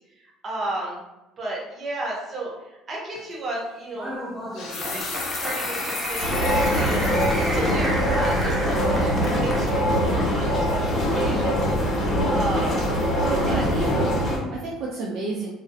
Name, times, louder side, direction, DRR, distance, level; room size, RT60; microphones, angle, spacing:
voice 1, 0.1-1.0 1.4-4.2 4.6-11.6 12.0-12.9 13.4-13.7, right 2 dB, 35° right, -3 dB, 0.8 m, -33 dB
sound 1, 3.2-3.3 4.3-7.6 8.1-8.2 8.7-9.0 9.3-9.4, left 4 dB, 65° left, 0.5 m, -34 dB
Applause, 3.9-9.7, equal, 5° right, 0.5 m, -32 dB
sound 2, 6.2-14.4, equal, 40° left, 1.3 m, -23 dB
voice 2, 13.2-15.5, right 2 dB, 55° right, -3 dB, 0.4 m, -31 dB
2.4 x 2.0 x 2.5 m, 0.99 s
supercardioid pair, 100°, 0 cm